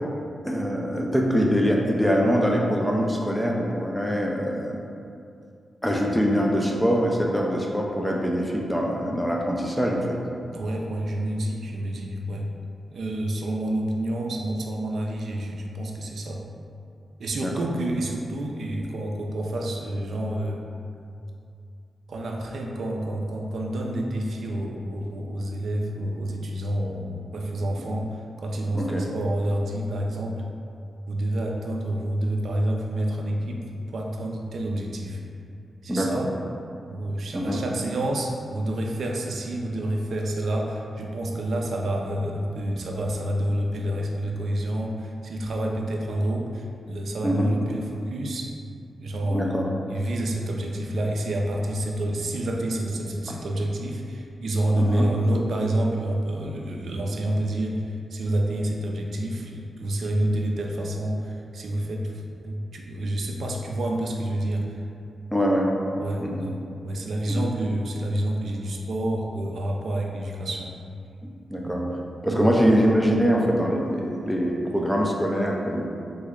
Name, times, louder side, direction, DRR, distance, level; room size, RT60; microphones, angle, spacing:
voice 1, 0.4-4.8 5.8-10.2 17.4-17.5 28.7-29.1 35.9-36.3 37.3-37.6 47.2-47.5 49.3-49.7 54.8-55.1 65.3-65.7 66.2-66.5 67.3-67.5 71.5-71.8 72.2-75.9, equal, ahead, -1 dB, 0.4 m, -23 dB
voice 2, 10.5-12.5 12.9-16.4 17.2-20.6 22.1-30.4 31.1-33.6 33.9-35.2 35.8-36.3 36.9-48.5 49.0-49.6 49.9-64.8 66.0-66.6 66.8-70.8 71.6-71.8 72.3-72.5, right 1 dB, 70° right, 0 dB, 0.3 m, -28 dB
3.4 x 2.1 x 3.6 m, 2.5 s
cardioid pair, 85°, 0 cm